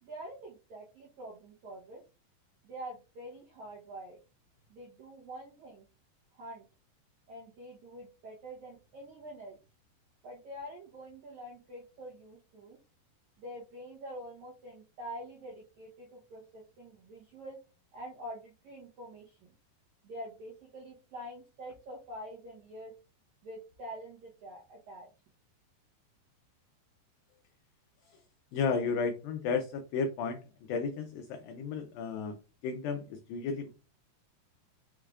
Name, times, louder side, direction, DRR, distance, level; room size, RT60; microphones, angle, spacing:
voice 1, 0.0-2.0 2.6-4.2 4.7-5.9 6.3-6.6 7.3-9.6 10.2-12.8 13.4-17.6 17.9-19.5 20.0-22.9 23.4-25.1, right 1 dB, 75° right, -4 dB, 1.7 m, -46 dB
voice 2, 28.5-30.4 30.7-32.4 32.6-33.7, left 5 dB, 90° left, 6 dB, 2.0 m, -33 dB
6.2 x 3.2 x 2.4 m, 0.31 s
omnidirectional pair, 4.7 m